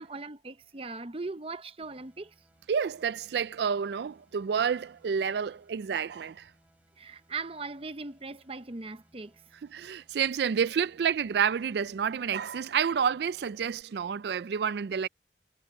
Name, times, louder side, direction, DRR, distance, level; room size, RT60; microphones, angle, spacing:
voice 1, 0.0-2.3 7.0-9.3, right 3 dB, 30° right, 0.8 m, -39 dB
sound 1, 1.8-13.8, equal, 10° right, 7.8 m, -66 dB
voice 2, 2.7-6.5 9.7-15.1, right 7 dB, 65° right, 0.4 m, -29 dB
head